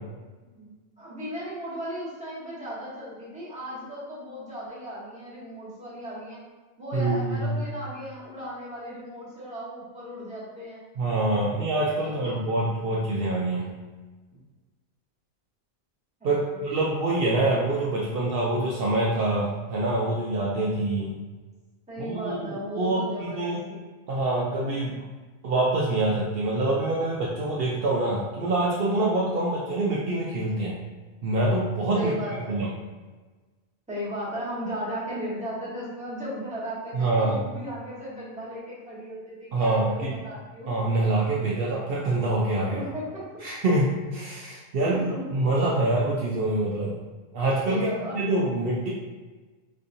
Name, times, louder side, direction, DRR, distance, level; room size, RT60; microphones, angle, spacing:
voice 1, 0.4-6.4 6.8-10.8 12.0-12.3 16.2-16.7 21.9-23.8 31.9-32.6 33.9-40.7 42.7-43.2 44.8-45.5 47.7-48.1, equal, 5° right, -9 dB, 1.2 m, -36 dB
voice 2, 6.9-7.5 11.0-13.7 16.2-21.2 22.0-23.6 24.1-25.0 25.4-30.8 31.2-32.1 32.5-32.7 36.9-37.4 39.5-40.2 40.7-42.9 43.4-43.8 44.1-47.0 47.3-47.9 48.1-48.9, right 2 dB, 75° right, -5 dB, 0.5 m, -25 dB
4.1 x 2.7 x 2.6 m, 1.3 s
omnidirectional pair, 1.5 m